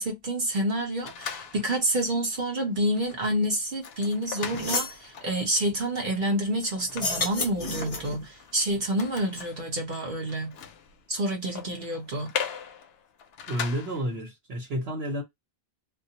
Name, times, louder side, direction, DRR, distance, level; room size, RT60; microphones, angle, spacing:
voice 1, 0.0-10.5 11.1-12.3, right 1 dB, 55° right, 0.8 m, -28 dB
sound 1, 1.0-1.9 2.4-2.5 2.8-14.2, left 7 dB, 75° left, 0.8 m, -40 dB
sound 2, 4.0-4.1 4.4-5.0 6.9-8.2, left 3 dB, 40° left, 0.6 m, -30 dB
voice 2, 13.5-15.2, equal, 80° right, 1.1 m, -30 dB
2.3 x 2.1 x 2.7 m
omnidirectional pair, 1.0 m